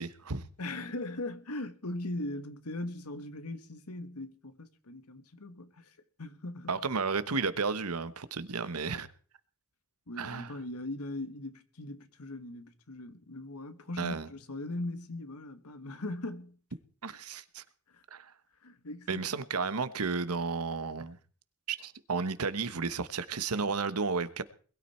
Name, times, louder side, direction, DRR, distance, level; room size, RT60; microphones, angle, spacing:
voice 1, 0.0-0.4 6.7-9.1 10.2-10.6 14.0-14.3 17.0-17.6 18.1-18.3 19.1-21.2 21.7-24.4, right 4 dB, 85° right, 1.1 m, -33 dB
voice 2, 0.6-6.8 10.1-16.6 17.9-18.0 18.6-19.3, left 2 dB, 85° left, 1.6 m, -40 dB
21.5 x 13.0 x 4.4 m
head